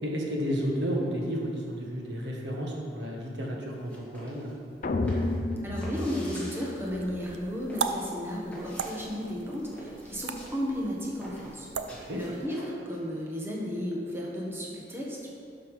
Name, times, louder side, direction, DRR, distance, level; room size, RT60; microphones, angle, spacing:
voice 1, 0.0-4.6 12.1-12.2, equal, 70° right, -1 dB, 1.5 m, -32 dB
sound 1, 3.7-13.0, equal, 10° left, 2.4 m, -46 dB
sound 2, 4.8-7.1, left 2 dB, 45° left, 0.5 m, -31 dB
voice 2, 5.6-11.7 11.9-15.3, equal, 15° right, -4 dB, 1.4 m, -34 dB
sound 3, 6.6-12.5, right 5 dB, 85° right, 0.6 m, -38 dB
11.5 x 5.8 x 4.9 m, 2.4 s
head